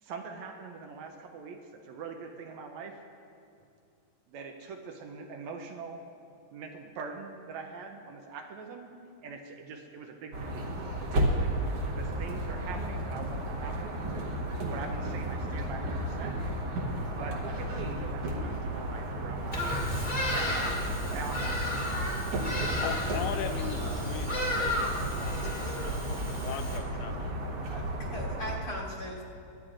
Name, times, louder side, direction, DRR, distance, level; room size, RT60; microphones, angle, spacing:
voice 1, 0.0-3.0 4.3-6.0 6.5-8.9 9.2-11.6 12.0-14.0 14.7-16.4 17.1-19.7 20.2-22.8, right 4 dB, 75° right, 3 dB, 1.9 m, -43 dB
sound 1, 10.3-28.6, right 1 dB, 60° right, 1.9 m, -33 dB
Bird vocalization bird call bird song, 19.5-26.8, left 1 dB, 25° left, 1.2 m, -33 dB
voice 2, 22.8-27.6, left 9 dB, 85° left, 8 dB, 2.0 m, -40 dB
voice 3, 25.6-25.9 27.7-29.2, equal, 55° left, -5 dB, 2.1 m, -39 dB
24.0 x 9.5 x 2.5 m, 2.5 s
omnidirectional pair, 3.4 m